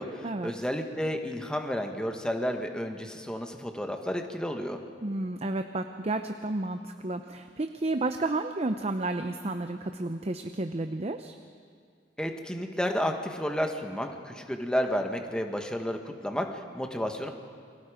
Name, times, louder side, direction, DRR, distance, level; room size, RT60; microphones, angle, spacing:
voice 1, 0.0-4.8 12.2-17.3, equal, 5° left, 4 dB, 1.5 m, -31 dB
voice 2, 5.0-11.3, right 2 dB, 35° right, 7 dB, 0.7 m, -31 dB
29.5 x 23.0 x 5.1 m, 2.1 s
head